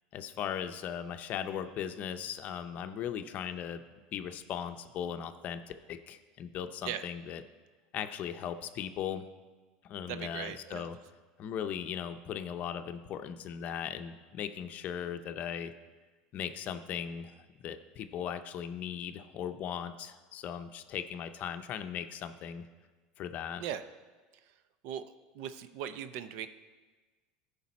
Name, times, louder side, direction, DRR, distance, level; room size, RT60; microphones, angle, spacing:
voice 1, 0.1-3.8 4.1-7.4 7.9-9.3 9.8-11.0 11.4-15.7 16.3-17.3 17.6-22.7 23.2-23.6, left 9 dB, 45° left, 9 dB, 0.6 m, -38 dB
voice 2, 10.1-10.9 23.6-23.8 24.3-24.5 24.8-25.0 25.3-26.5, right 9 dB, 65° right, 11 dB, 0.6 m, -39 dB
14.5 x 5.2 x 4.2 m, 1.3 s
supercardioid pair, 120°, 4 cm